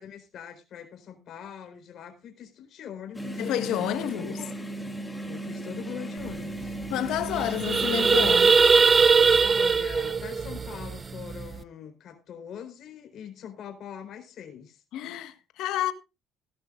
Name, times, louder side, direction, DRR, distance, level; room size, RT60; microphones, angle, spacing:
voice 1, 0.0-3.4 4.0-4.5 5.2-6.8 9.4-14.8, left 8 dB, 60° left, 4.1 m, -42 dB
sound 1, 3.1-8.3, right 1 dB, 10° left, 2.7 m, -36 dB
voice 2, 3.4-4.4 6.9-8.6 14.9-15.9, left 12 dB, 80° left, 1.5 m, -29 dB
sound 2, 6.3-6.4 6.6-6.9 7.2-11.6, right 5 dB, 30° right, 0.7 m, -21 dB
17.0 x 11.5 x 2.5 m
cardioid pair, 100°, 0 cm